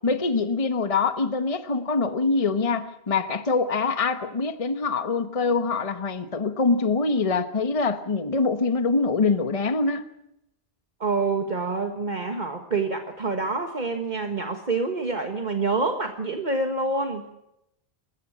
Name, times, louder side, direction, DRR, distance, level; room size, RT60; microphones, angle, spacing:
voice 1, 0.0-10.1, left 4 dB, 35° left, 10 dB, 1.2 m, -24 dB
voice 2, 11.0-17.3, right 3 dB, 45° right, 5 dB, 1.7 m, -27 dB
27.5 x 15.0 x 7.4 m, 0.83 s
omnidirectional pair, 1.1 m